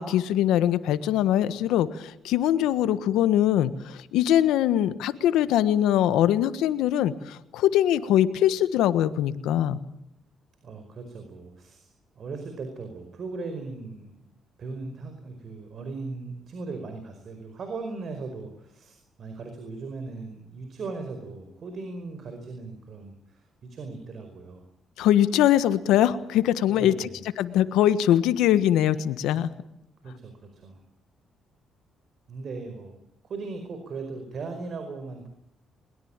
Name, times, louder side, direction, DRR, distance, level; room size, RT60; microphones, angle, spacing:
voice 1, 0.0-9.8 25.0-27.1 27.4-29.5, left 11 dB, 90° left, 12 dB, 1.4 m, -22 dB
voice 2, 10.6-11.9 12.1-14.1 14.6-24.6 26.7-27.2 30.0-30.8 32.3-33.0 33.2-35.3, right 3 dB, 55° right, 6 dB, 5.0 m, -38 dB
21.5 x 21.5 x 9.0 m, 0.79 s
cardioid pair, 90°, 0 cm